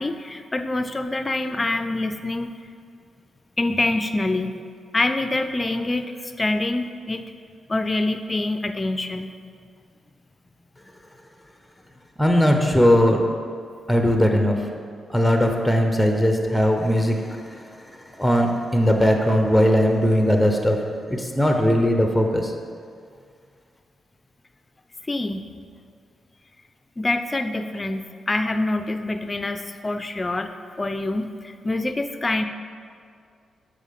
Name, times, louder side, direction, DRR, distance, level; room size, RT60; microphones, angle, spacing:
voice 1, 0.0-2.5 3.6-4.6 4.9-7.3 7.7-9.3 25.1-25.5 27.0-28.0 28.3-30.5 30.8-32.4, left 2 dB, 30° left, 8 dB, 0.5 m, -25 dB
voice 2, 12.2-13.2 13.9-14.6 15.1-17.6 18.2-20.8 21.1-22.5, equal, ahead, 3 dB, 0.9 m, -19 dB
7.1 x 3.7 x 5.8 m, 2.2 s
supercardioid pair, 50°, 0 cm